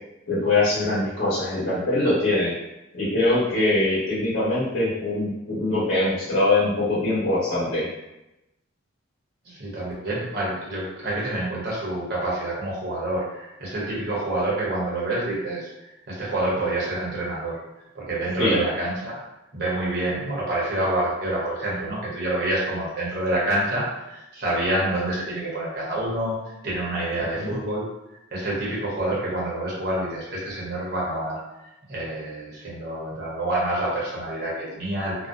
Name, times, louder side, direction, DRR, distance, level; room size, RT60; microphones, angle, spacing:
voice 1, 0.3-2.5 2.9-7.9 18.4-18.6 27.4-27.6, left 2 dB, 80° left, -9 dB, 0.9 m, -23 dB
voice 2, 9.4-17.6 17.9-19.2 19.5-31.4 31.9-35.3, right 1 dB, 55° right, -6 dB, 0.8 m, -27 dB
2.5 x 2.0 x 2.5 m, 0.93 s
head